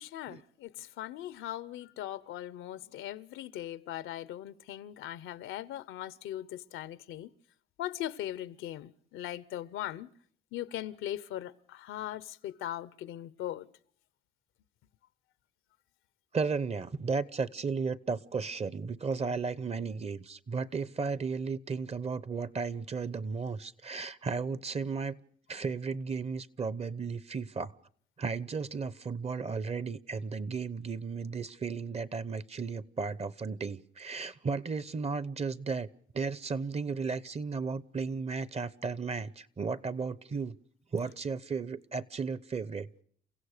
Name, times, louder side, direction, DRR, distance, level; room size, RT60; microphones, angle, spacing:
voice 1, 0.0-7.3 7.8-10.1 10.5-13.7, left 13 dB, 90° left, 0.8 m, -39 dB
voice 2, 16.3-25.2 25.5-27.7 28.2-35.9 36.1-40.6 40.9-42.9, right 4 dB, 30° right, 0.8 m, -34 dB
29.0 x 15.5 x 6.6 m
cardioid pair, 90°, 20 cm